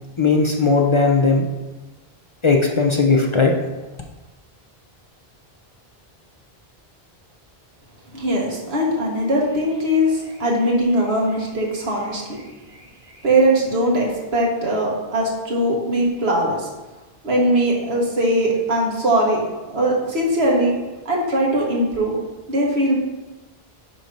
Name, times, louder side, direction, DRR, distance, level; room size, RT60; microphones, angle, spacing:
voice 1, 0.2-1.5 2.4-3.5, left 4 dB, 35° left, 1 dB, 0.6 m, -17 dB
voice 2, 8.1-12.4 13.2-16.7 17.2-19.4 19.7-20.7 21.1-22.1 22.5-23.0, right 1 dB, 80° right, -2 dB, 1.7 m, -20 dB
9.2 x 3.1 x 5.3 m, 1.2 s
omnidirectional pair, 1.0 m